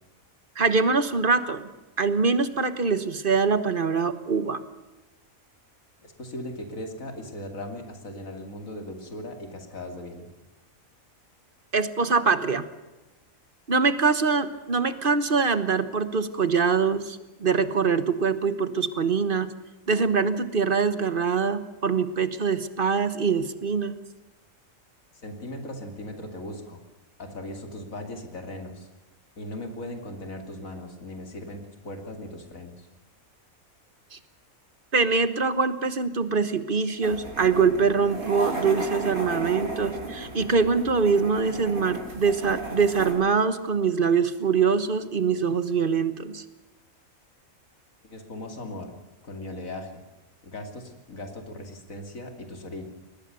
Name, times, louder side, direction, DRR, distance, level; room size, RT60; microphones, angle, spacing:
voice 1, 0.6-1.7 2.0-4.6 11.7-12.7 13.7-19.5 19.9-24.0 34.1-34.2 34.9-46.4, right 5 dB, 40° right, 13 dB, 1.3 m, -24 dB
voice 2, 6.0-10.3 25.1-26.8 27.2-28.9 29.4-32.9 48.1-49.0 49.2-50.0 50.4-52.8, left 1 dB, 70° left, 5 dB, 3.0 m, -38 dB
sound 1, 37.0-43.1, right 2 dB, 85° right, 5.1 m, -35 dB
22.5 x 19.5 x 6.9 m, 1.1 s
omnidirectional pair, 1.5 m